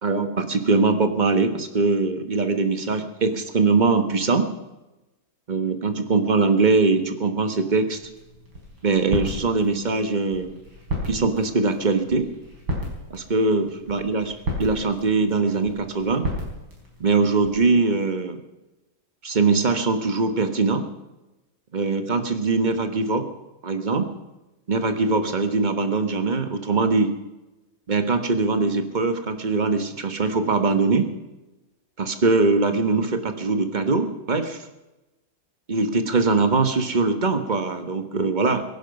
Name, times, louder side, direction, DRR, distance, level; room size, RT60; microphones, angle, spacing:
voice 1, 0.0-4.5 5.5-8.0 8.8-10.5 11.0-12.3 13.1-16.3 17.0-18.4 19.2-20.9 21.7-23.3 23.6-24.1 24.7-27.1 27.9-31.1 32.0-34.6 35.7-38.6, right 3 dB, 25° right, 8 dB, 1.1 m, -22 dB
sound 1, 7.9-17.7, equal, 70° right, 5.3 m, -34 dB
23.0 x 11.0 x 5.4 m, 1.0 s
omnidirectional pair, 2.2 m